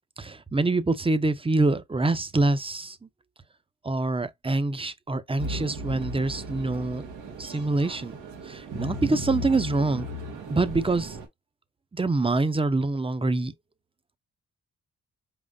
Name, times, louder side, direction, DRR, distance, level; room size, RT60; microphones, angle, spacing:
voice 1, 0.2-3.0 3.8-7.1 7.4-8.1 8.5-10.1 10.5-11.2 11.9-13.5, right 2 dB, 20° right, 0.9 m, -25 dB
sound 1, 5.4-11.3, equal, 90° right, 2.0 m, -36 dB
4.9 x 3.9 x 2.4 m
supercardioid pair, 55°, 29 cm